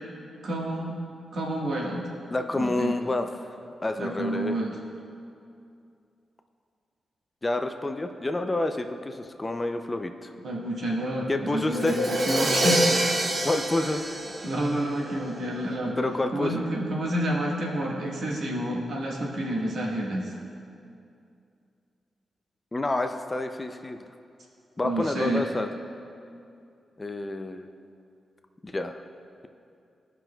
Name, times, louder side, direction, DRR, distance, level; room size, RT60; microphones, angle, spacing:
voice 1, 0.4-1.0 1.3-2.1 2.5-2.9 4.0-4.7 10.4-12.9 14.4-16.0 16.3-20.3 24.8-25.4, right 1 dB, 75° right, -3 dB, 1.4 m, -29 dB
voice 2, 2.3-3.5 3.8-4.6 7.4-10.3 11.3-12.1 13.4-14.0 16.0-16.7 22.7-24.1 24.8-25.7 27.0-27.7 28.6-29.0, left 2 dB, 20° left, 6 dB, 0.4 m, -28 dB
Crash cymbal, 11.7-15.5, right 1 dB, 40° right, 0.8 m, -26 dB
17.0 x 5.9 x 2.2 m, 2.5 s
wide cardioid pair, 120°, 0 cm